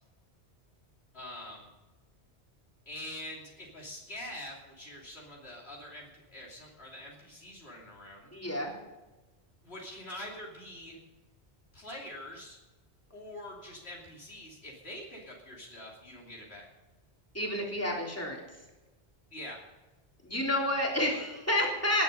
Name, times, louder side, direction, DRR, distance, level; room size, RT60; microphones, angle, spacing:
voice 1, 1.1-1.7 2.9-8.3 9.6-11.0 11.7-12.6 13.1-16.6 19.3-19.6, left 1 dB, 70° left, -2 dB, 3.2 m, -45 dB
voice 2, 8.3-8.7 17.3-18.4 20.2-22.0, left 1 dB, 15° left, -1 dB, 3.6 m, -29 dB
18.5 x 11.5 x 5.4 m, 1.1 s
omnidirectional pair, 1.1 m